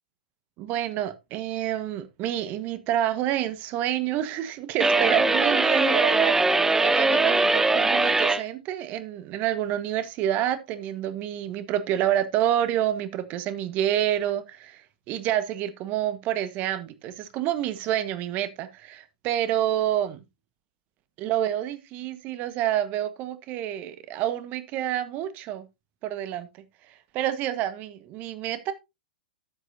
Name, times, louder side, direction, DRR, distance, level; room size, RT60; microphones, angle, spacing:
voice 1, 0.6-14.8 15.1-20.2 21.2-25.6 26.0-26.5 27.1-28.7, right 11 dB, 40° right, 1.4 m, -28 dB
sound 1, 4.8-8.4, right 3 dB, 10° right, 0.7 m, -21 dB
13.0 x 8.1 x 2.7 m
figure-of-eight pair, 105°, 5 cm